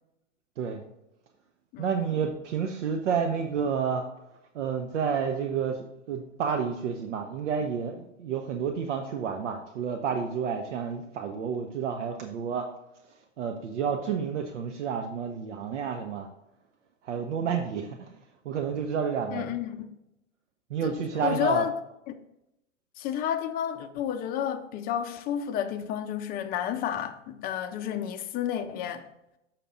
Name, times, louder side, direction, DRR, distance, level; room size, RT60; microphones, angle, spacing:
voice 1, 1.8-4.0 4.5-12.7 13.4-16.3 17.0-18.2 18.4-19.6 20.7-21.6, right 6 dB, 70° right, 0.8 m, -30 dB
voice 2, 19.3-20.0 20.8-21.7 22.1-22.2 23.0-29.1, left 9 dB, 25° left, 0.5 m, -31 dB
6.8 x 5.8 x 3.7 m
hypercardioid pair, 110°, 38 cm